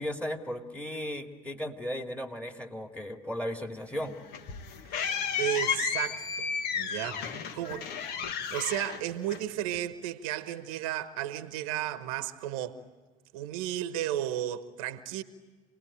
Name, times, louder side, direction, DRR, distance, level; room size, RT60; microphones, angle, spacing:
voice 1, 0.0-4.2 7.1-7.7, equal, 5° left, 2.5 m, -36 dB
sound 1, 3.9-9.8, left 7 dB, 65° left, 1.3 m, -33 dB
voice 2, 4.9-6.5 6.8-7.9 8.5-12.8 13.3-15.2, right 12 dB, 75° right, 1.0 m, -34 dB
27.5 x 19.0 x 8.7 m
hypercardioid pair, 65°, 18 cm